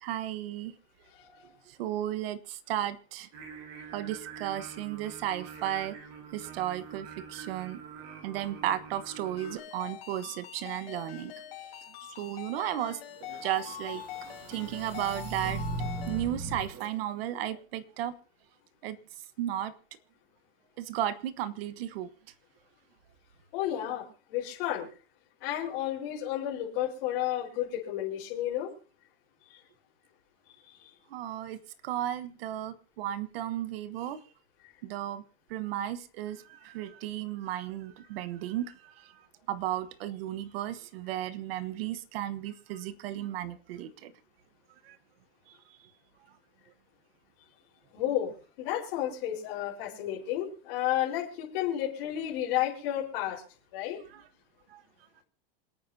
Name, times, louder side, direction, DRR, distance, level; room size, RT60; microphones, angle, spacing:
voice 1, 0.0-0.7 1.7-3.3 3.9-5.9 6.3-7.8 8.2-11.3 12.2-13.0 13.4-14.0 14.5-15.6 16.1-18.1 18.8-19.0 19.4-19.7 20.8-22.1 31.1-34.2 34.8-35.2 35.5-39.1 39.5-44.1 44.8-45.0 54.1-54.3 54.7-54.8, right 12 dB, 75° right, 12 dB, 1.3 m, -34 dB
voice 2, 1.1-1.5 23.5-24.9 25.4-28.7 30.5-30.8 47.9-48.3 48.6-53.4 53.7-54.0, left 12 dB, 65° left, -4 dB, 4.4 m, -32 dB
Singing, 3.3-9.6, right 7 dB, 55° right, 7.8 m, -45 dB
Ringtone, 9.4-16.2, left 11 dB, 85° left, 3.9 m, -44 dB
sound 1, 13.1-16.9, right 2 dB, 40° right, 2.9 m, -38 dB
27.5 x 9.2 x 2.8 m, 0.38 s
supercardioid pair, 155°, 30 cm